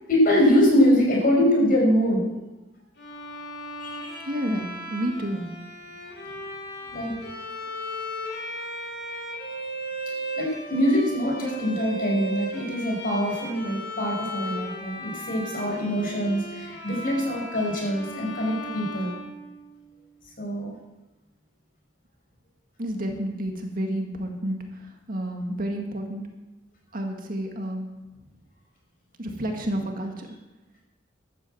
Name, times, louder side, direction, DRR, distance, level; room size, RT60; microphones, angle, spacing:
voice 1, 0.1-2.3 3.8-4.2 6.9-7.1 10.4-19.2 20.4-20.7, equal, 50° left, -1 dB, 5.5 m, -23 dB
Bowed string instrument, 3.0-20.0, equal, 70° left, 5.7 m, -36 dB
voice 2, 4.2-5.5 22.8-26.2 26.9-27.9 29.2-30.3, right 1 dB, 50° right, 2 dB, 2.0 m, -30 dB
12.5 x 8.9 x 7.9 m, 1.1 s
head